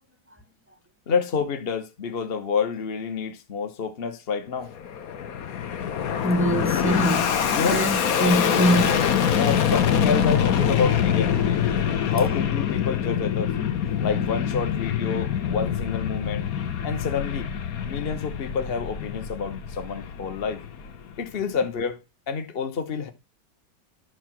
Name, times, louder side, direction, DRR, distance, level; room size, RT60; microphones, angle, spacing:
voice 1, 1.1-4.7 7.5-7.8 9.4-11.7 12.0-13.6 14.0-16.5 16.8-17.5 17.8-20.6 21.2-22.0 22.3-23.1, left 5 dB, 40° left, 1.1 m, -28 dB
Fixed-wing aircraft airplane, 4.6-21.2, left 8 dB, 60° left, 1.3 m, -25 dB
voice 2, 6.2-9.0, equal, 15° right, 0.5 m, -24 dB
12.0 x 4.7 x 5.9 m
omnidirectional pair, 1.9 m